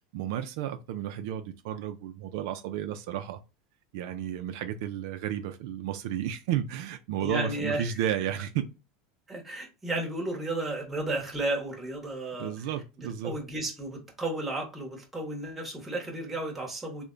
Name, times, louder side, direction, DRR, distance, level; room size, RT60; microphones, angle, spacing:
voice 1, 0.1-3.4 3.9-8.7 12.4-13.3, right 10 dB, 70° right, 0.4 m, -32 dB
voice 2, 7.2-7.9 9.3-12.6 13.0-17.0, right 2 dB, 10° right, 1.0 m, -33 dB
3.3 x 2.1 x 3.7 m
supercardioid pair, 150°, 2 cm